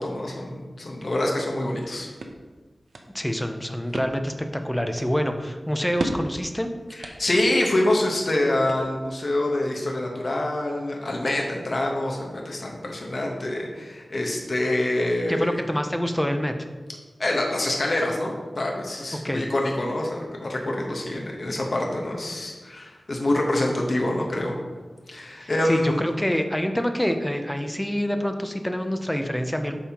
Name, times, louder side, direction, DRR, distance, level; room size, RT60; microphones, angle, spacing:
voice 1, 0.0-2.1 7.0-15.6 17.2-24.5 25.1-26.0, left 1 dB, 50° left, -1 dB, 1.0 m, -26 dB
sound 1, 1.8-9.3, right 2 dB, 85° right, 0.7 m, -38 dB
voice 2, 3.1-4.3 4.6-6.7 15.3-16.5 19.2-19.4 25.4-29.8, equal, 5° left, 6 dB, 0.6 m, -26 dB
8.4 x 5.5 x 2.9 m, 1.3 s
wide cardioid pair, 95°, 0 cm